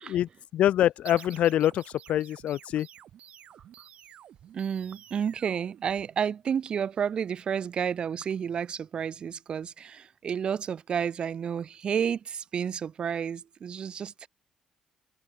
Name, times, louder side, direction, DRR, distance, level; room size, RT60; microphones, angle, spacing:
voice 1, 0.0-1.8 2.1-2.9, left 12 dB, 70° left, 0.5 m, -25 dB
sound 1, 1.0-6.5, right 10 dB, 65° right, 5.6 m, -51 dB
voice 2, 4.5-14.3, right 7 dB, 45° right, 2.2 m, -31 dB
cardioid pair, 130°, 2 cm